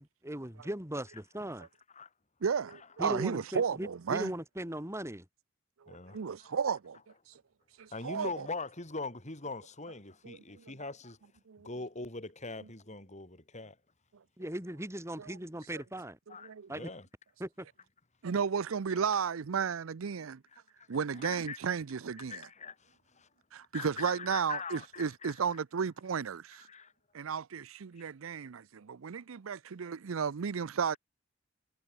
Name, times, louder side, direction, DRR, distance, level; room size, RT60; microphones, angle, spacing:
voice 1, 0.0-1.7 3.0-5.3 14.4-16.2 16.7-16.9 17.4-17.7, right 1 dB, 15° right, 5.3 m, -38 dB
voice 2, 2.4-4.3 5.9-7.0 7.8-8.5 10.2-10.4 11.5-11.7 15.2-15.4 16.3-16.9 18.2-20.4 20.9-22.5 23.5-26.7 27.1-31.0, right 6 dB, 80° right, 0.5 m, -34 dB
voice 3, 5.9-6.5 7.9-11.2 11.6-13.8 16.3-17.1 20.9-21.6 22.2-22.9 23.1-23.3 23.7-25.3 26.7-26.9, left 3 dB, 35° left, 6.1 m, -42 dB
head